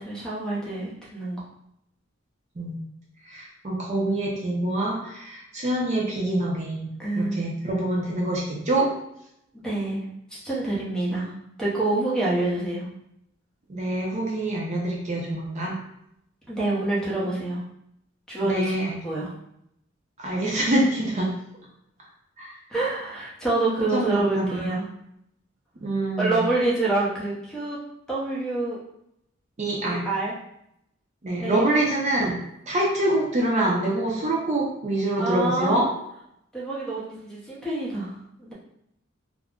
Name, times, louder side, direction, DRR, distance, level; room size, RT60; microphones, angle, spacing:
voice 1, 0.0-1.4 7.0-7.4 9.5-10.0 10.3-11.3 11.6-12.8 16.5-17.6 18.3-18.6 19.0-19.3 22.7-24.9 26.2-27.8 28.1-28.8 29.8-30.3 31.4-31.7 35.2-35.8 36.5-38.1 38.4-38.5, right 2 dB, 5° left, -6 dB, 0.8 m, -26 dB
voice 2, 3.2-8.9 13.7-15.8 18.4-18.9 20.2-21.3 22.4-22.6 23.9-24.6 25.8-26.5 29.6-30.1 31.2-32.4 32.7-35.8, right 1 dB, 35° right, -3 dB, 0.5 m, -25 dB
2.4 x 2.1 x 3.5 m, 0.77 s
head